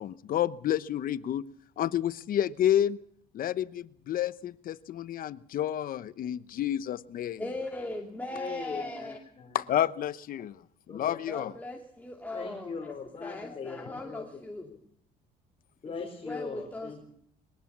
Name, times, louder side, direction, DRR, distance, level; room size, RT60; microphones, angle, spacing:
voice 1, 0.0-1.5 1.8-3.0 3.3-7.4 9.5-10.6 10.9-11.5, left 11 dB, 55° left, 16 dB, 0.9 m, -30 dB
voice 2, 7.4-9.2 11.3-12.7 13.2-14.7 16.2-17.0, left 2 dB, 10° left, 1 dB, 2.7 m, -38 dB
voice 3, 8.3-9.6 10.9-11.5 12.3-14.4 14.7-14.8 15.8-17.0, left 5 dB, 35° left, 2 dB, 5.0 m, -40 dB
22.5 x 18.5 x 7.3 m, 0.65 s
cardioid pair, 110°, 17 cm